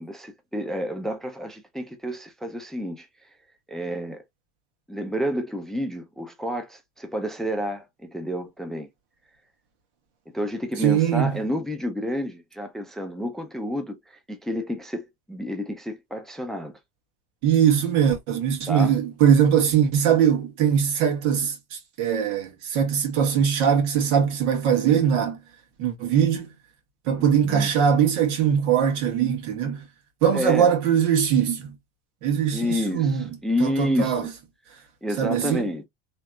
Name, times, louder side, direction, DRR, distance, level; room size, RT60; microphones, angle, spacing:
voice 1, 0.0-3.1 3.7-4.2 4.9-8.9 10.3-16.7 18.7-19.0 27.1-27.7 30.3-30.7 32.5-34.3 35.0-35.8, equal, ahead, 0.5 m, -30 dB
voice 2, 10.8-11.3 17.4-25.4 25.8-26.5 27.1-29.8 30.2-31.7 32.2-33.2 33.6-34.2 35.2-35.7, right 8 dB, 75° right, 1.5 m, -21 dB
3.3 x 2.8 x 2.3 m
supercardioid pair, 105°, 35 cm